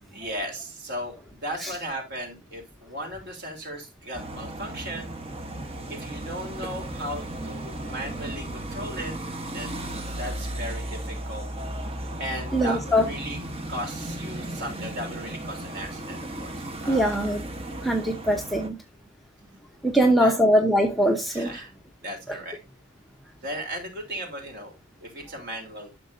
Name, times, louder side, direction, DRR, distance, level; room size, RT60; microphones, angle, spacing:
voice 1, 0.1-5.1 5.9-9.1 9.5-9.8 10.1-11.5 12.2-13.4 13.7-17.3 19.9-20.3 21.3-21.7 22.0-22.6 23.4-26.0, right 1 dB, 50° right, 3.4 m, -36 dB
sound 1, 4.1-18.7, right 1 dB, 25° right, 1.1 m, -35 dB
voice 2, 12.5-13.0 16.9-17.4 17.8-18.8 19.8-21.6, equal, ahead, 0.8 m, -22 dB
12.5 x 6.7 x 2.6 m
head